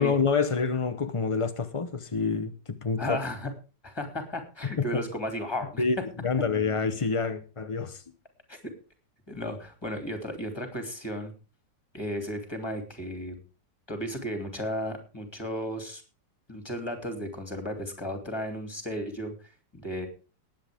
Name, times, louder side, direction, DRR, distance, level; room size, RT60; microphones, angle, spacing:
voice 1, 0.0-3.2 4.6-5.0 5.8-8.0, left 5 dB, 45° left, 0.4 m, -27 dB
voice 2, 3.0-3.5 3.8-5.8 8.5-8.6 9.3-11.3 11.9-13.4 13.9-16.0 16.5-20.1, equal, 15° left, 3.0 m, -34 dB
19.5 x 9.0 x 3.6 m
omnidirectional pair, 2.0 m